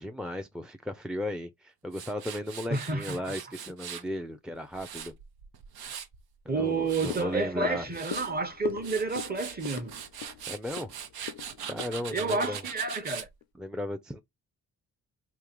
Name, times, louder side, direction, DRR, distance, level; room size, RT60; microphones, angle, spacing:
voice 1, 0.0-5.1 6.5-7.9 10.5-11.0 11.7-12.6 13.5-14.2, left 1 dB, ahead, 0.5 m, -35 dB
Tools, 1.9-4.1 4.5-6.2 6.6-7.2 7.7-8.3 8.7-13.3, right 8 dB, 80° right, 0.8 m, -41 dB
voice 2, 2.7-3.2 6.5-10.0 12.1-13.3, right 3 dB, 25° right, 1.0 m, -30 dB
sound 1, 6.5-13.0 13.4-13.5, left 11 dB, 70° left, 0.5 m, -42 dB
3.7 x 2.9 x 3.1 m
cardioid pair, 65°, 37 cm